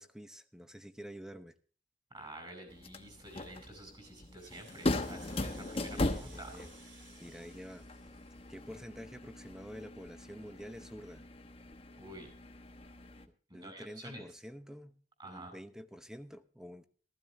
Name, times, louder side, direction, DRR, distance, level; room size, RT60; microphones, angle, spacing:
voice 1, 0.0-1.5 5.9-6.7 7.2-7.8 8.5-11.3 13.5-15.0 15.2-16.8, equal, 5° right, 11 dB, 0.8 m, -48 dB
voice 2, 2.1-6.6 12.0-12.3 13.5-14.4 15.2-15.5, right 1 dB, 25° right, 6 dB, 5.2 m, -49 dB
sound 1, 2.7-13.3, left 2 dB, 30° left, 1.1 m, -39 dB
Rattle (instrument), 4.2-9.0, right 4 dB, 75° right, 3.4 m, -59 dB
15.5 x 14.0 x 3.1 m, 0.41 s
head